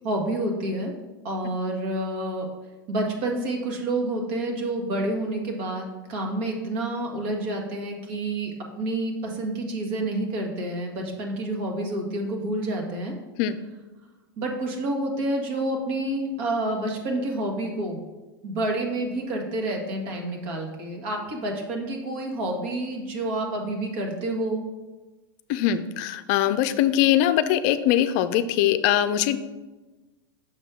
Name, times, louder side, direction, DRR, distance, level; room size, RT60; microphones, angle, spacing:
voice 1, 0.0-0.9 1.2-2.5 2.9-13.1 14.4-18.0 18.4-24.6, right 1 dB, 55° right, 1 dB, 1.7 m, -28 dB
voice 2, 25.5-29.4, left 11 dB, 55° left, 11 dB, 0.4 m, -22 dB
6.4 x 5.4 x 3.7 m, 1.2 s
hypercardioid pair, 110°, 12 cm